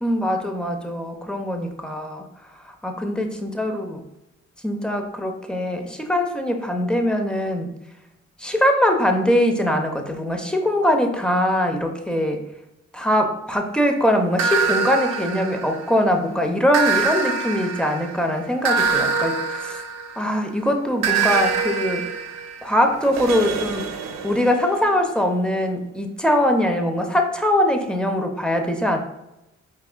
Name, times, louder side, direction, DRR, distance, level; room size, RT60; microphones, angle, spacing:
voice 1, 0.0-2.3 2.8-4.0 4.6-7.7 8.4-12.4 12.9-19.8 20.2-22.1 22.6-23.8 24.2-29.0, equal, 5° left, 4 dB, 0.7 m, -22 dB
sound 1, 14.4-16.1 16.7-20.4 21.0-24.8, right 5 dB, 60° right, 0.7 m, -25 dB
4.6 x 3.5 x 2.2 m, 0.92 s
supercardioid pair, 50°, 31 cm